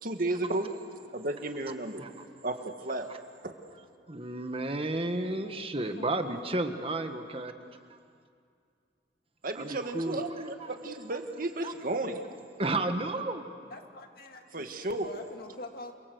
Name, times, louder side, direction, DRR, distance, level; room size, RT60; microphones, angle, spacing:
voice 1, 0.0-0.7 1.1-2.0 2.4-3.1 9.4-12.2 14.5-15.1, right 2 dB, 55° right, 6 dB, 1.8 m, -33 dB
voice 2, 4.1-7.5 9.5-10.2 10.6-10.7 11.6-11.7 12.6-13.5, right 2 dB, 35° right, 7 dB, 1.5 m, -32 dB
voice 3, 5.2-5.7 6.0-6.2 13.7-15.9, left 2 dB, 60° left, 4 dB, 2.2 m, -46 dB
29.5 x 22.5 x 8.1 m, 2.3 s
head